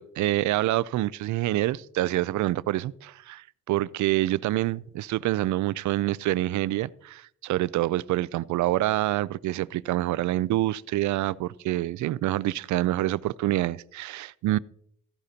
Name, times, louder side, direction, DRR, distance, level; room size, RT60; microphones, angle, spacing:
voice 1, 0.0-14.6, right 15 dB, 70° right, 0.5 m, -26 dB
14.5 x 11.5 x 2.8 m
cardioid pair, 90°, 30 cm